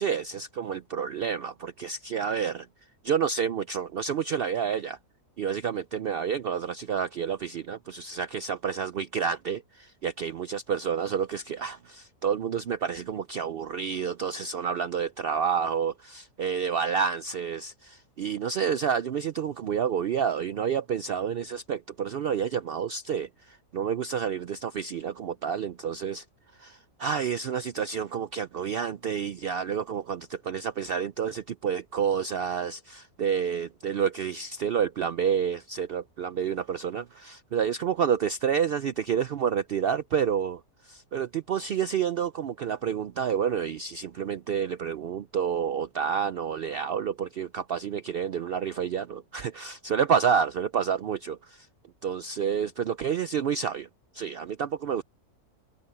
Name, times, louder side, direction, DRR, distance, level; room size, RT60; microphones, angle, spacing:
voice 1, 0.0-2.7 3.0-5.0 5.4-26.2 26.6-51.7 52.0-53.9 54.1-55.0, right 7 dB, 90° right, 0.5 m, -29 dB
omnidirectional pair, 1.6 m